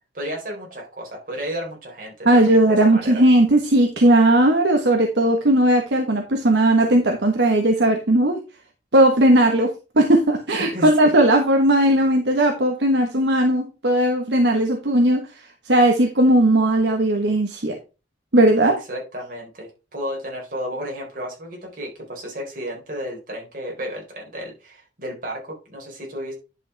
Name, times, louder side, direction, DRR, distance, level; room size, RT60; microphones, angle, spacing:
voice 1, 0.1-3.3 10.6-11.1 12.9-13.1 18.6-26.3, equal, 50° right, -1 dB, 4.3 m, -33 dB
voice 2, 2.2-8.4 8.9-15.2 15.7-17.7 18.3-18.7, right 1 dB, 75° right, 3 dB, 1.2 m, -17 dB
10.5 x 6.0 x 3.4 m, 0.31 s
head